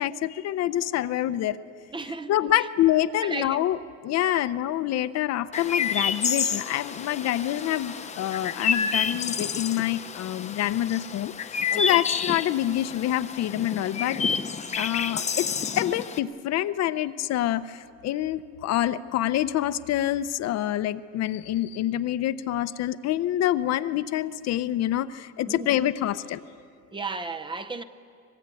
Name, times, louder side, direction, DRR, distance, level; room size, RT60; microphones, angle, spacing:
voice 1, 0.0-1.6 2.3-14.2 14.8-26.4, left 13 dB, 60° left, 0.7 m, -26 dB
voice 2, 1.9-2.7 3.2-3.6 11.7-11.9 25.5-25.7 26.9-27.8, right 3 dB, 15° right, 0.7 m, -34 dB
Chirp tweet, 5.5-16.2, left 6 dB, 25° left, 0.8 m, -29 dB
24.5 x 21.0 x 9.1 m
cardioid pair, 175°, 30 cm